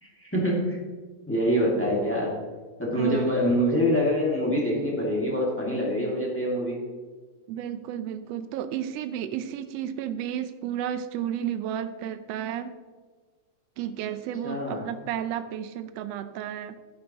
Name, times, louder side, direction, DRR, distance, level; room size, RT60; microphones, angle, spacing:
voice 1, 0.0-0.8 1.3-2.4 2.8-6.8 14.4-14.9, equal, 5° left, -3 dB, 1.7 m, -25 dB
voice 2, 3.0-3.4 7.5-12.7 13.8-16.8, right 10 dB, 80° right, 11 dB, 1.5 m, -32 dB
11.0 x 10.5 x 3.0 m, 1.4 s
omnidirectional pair, 3.4 m